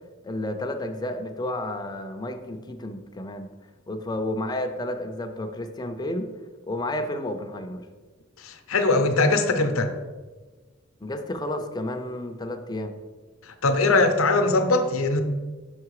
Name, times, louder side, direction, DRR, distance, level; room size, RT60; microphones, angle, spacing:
voice 1, 0.2-3.5 3.9-6.3 6.7-7.8 11.0-12.9, left 1 dB, 20° left, 5 dB, 0.5 m, -31 dB
voice 2, 8.4-9.9 13.6-15.2, left 3 dB, 80° left, 7 dB, 0.7 m, -21 dB
6.1 x 4.8 x 4.7 m, 1.3 s
head